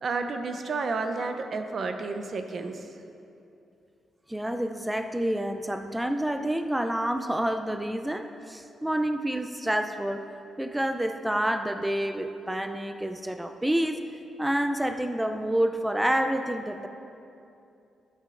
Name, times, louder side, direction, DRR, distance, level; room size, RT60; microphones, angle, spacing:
voice 1, 0.0-2.9, right 3 dB, 55° right, 6 dB, 0.6 m, -31 dB
voice 2, 4.3-10.3 10.6-14.0 14.4-16.9, right 1 dB, 10° right, 7 dB, 0.5 m, -28 dB
11.5 x 8.1 x 2.5 m, 2.7 s
supercardioid pair, 55°, 0 cm